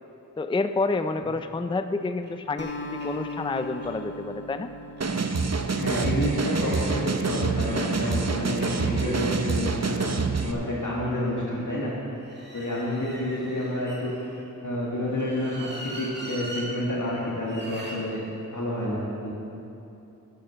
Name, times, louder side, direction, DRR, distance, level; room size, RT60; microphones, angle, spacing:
voice 1, 0.4-4.7, left 3 dB, 15° left, 9 dB, 0.4 m, -29 dB
sound 1, 2.2-2.3 2.7-2.8 3.0-3.9 4.8-11.0 12.2-14.4 15.1-16.7 17.4-18.0, right 1 dB, 30° right, 2.1 m, -42 dB
Acoustic guitar, 2.6-7.1, left 1 dB, 30° left, 1.0 m, -39 dB
sound 2, 5.0-10.5, right 4 dB, 50° right, 0.7 m, -26 dB
voice 2, 5.7-10.0 10.4-12.0 12.5-14.1 14.6-18.2 18.5-19.3, left 1 dB, 60° left, -6 dB, 1.9 m, -29 dB
11.0 x 9.1 x 5.7 m, 2.9 s
wide cardioid pair, 45°, 35 cm